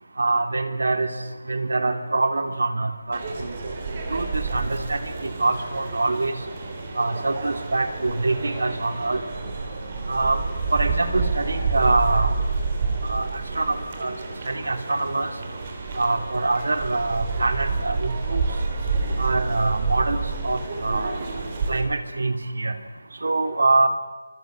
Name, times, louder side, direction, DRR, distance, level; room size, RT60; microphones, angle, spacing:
voice 1, 0.2-1.1 1.5-3.5 4.1-6.4 7.0-9.2 10.1-10.4 10.7-12.3 13.0-14.1 14.5-15.3 16.0-18.4 19.2-21.2 21.7-22.7 23.2-23.9, right 3 dB, 75° right, 8 dB, 3.1 m, -24 dB
sound 1, 3.1-21.8, right 4 dB, 20° right, 3.0 m, -29 dB
25.5 x 25.0 x 7.8 m, 1.2 s
figure-of-eight pair, 180°, 0 cm